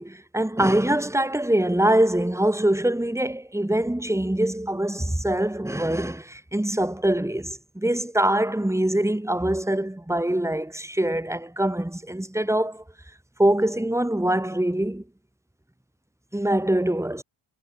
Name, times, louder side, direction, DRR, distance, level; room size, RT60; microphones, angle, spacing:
voice 1, 0.0-12.8 13.4-15.0 16.3-17.2, right 1 dB, 5° right, 4.0 m, -24 dB
cardioid pair, 105°, 48 cm